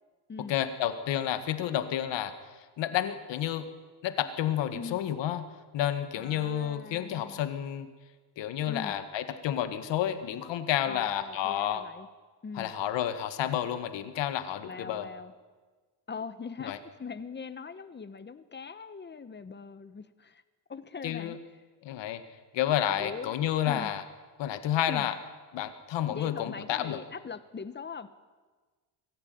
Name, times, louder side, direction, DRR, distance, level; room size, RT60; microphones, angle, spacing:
voice 1, 0.5-2.3 2.8-3.7 4.0-5.4 5.7-7.9 8.4-11.8 12.6-15.1 16.6-16.8 21.0-21.4 21.8-22.2 22.5-24.0 24.4-25.1 25.5-27.0, left 11 dB, 80° left, 10 dB, 1.9 m, -30 dB
voice 2, 6.1-7.4 8.7-9.0 10.9-12.1 12.4-12.7 14.6-15.3 16.1-20.4 20.7-21.4 23.0-23.3 23.6-23.9 24.9-25.1 26.1-28.1, left 5 dB, 25° left, 13 dB, 1.2 m, -41 dB
23.0 x 14.5 x 9.5 m, 1.4 s
cardioid pair, 125°, 43 cm